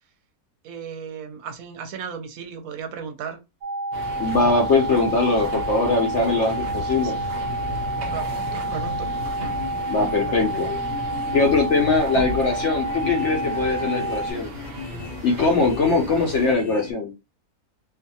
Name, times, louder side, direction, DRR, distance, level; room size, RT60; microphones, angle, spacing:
voice 1, 0.6-3.4 7.0-7.2 8.1-9.1 9.4-9.7 10.1-10.5 16.1-16.3, right 7 dB, 70° right, 0.9 m, -36 dB
sound 1, 3.6-14.3, right 2 dB, 40° right, 0.8 m, -29 dB
sound 2, 3.9-16.5, equal, 85° right, 0.4 m, -35 dB
voice 2, 4.2-7.2 9.9-10.7 11.3-14.5 15.2-17.1, left 3 dB, 65° left, 0.7 m, -21 dB
sound 3, 6.5-16.9, left 5 dB, 85° left, 1.2 m, -37 dB
2.5 x 2.4 x 2.6 m
omnidirectional pair, 1.7 m